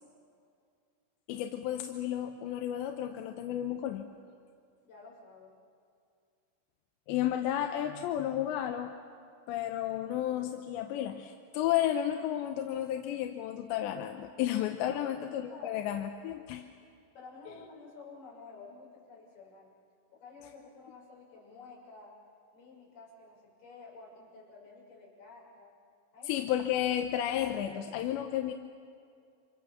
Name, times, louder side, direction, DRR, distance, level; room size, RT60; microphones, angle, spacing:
voice 1, 1.3-4.1 7.1-9.0 9.5-16.7 26.3-28.5, left 11 dB, 75° left, 4 dB, 3.0 m, -32 dB
voice 2, 4.8-5.6 14.9-15.1 15.4-15.8 17.1-19.7 20.1-22.2 22.5-25.7 26.1-26.4, left 4 dB, 55° left, -3 dB, 8.2 m, -51 dB
29.5 x 26.0 x 7.4 m, 2.3 s
omnidirectional pair, 5.5 m